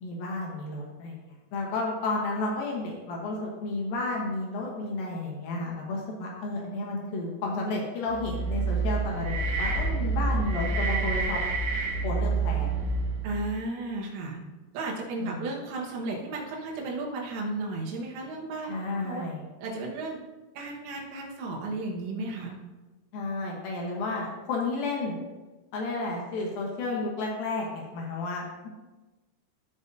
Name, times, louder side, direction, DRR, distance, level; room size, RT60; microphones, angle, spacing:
voice 1, 0.0-1.2 1.5-11.4 12.0-12.7 15.2-15.4 18.6-19.4 23.1-25.2 25.7-28.7, left 2 dB, 75° left, -2 dB, 2.2 m, -32 dB
sound 1, 8.1-13.4, right 3 dB, 65° right, 2.7 m, -28 dB
voice 2, 13.2-14.4 14.7-18.7 19.0-19.3 19.6-20.2 20.6-22.6, right 2 dB, 85° right, -2 dB, 3.9 m, -34 dB
16.0 x 5.4 x 2.7 m, 1.2 s
omnidirectional pair, 5.8 m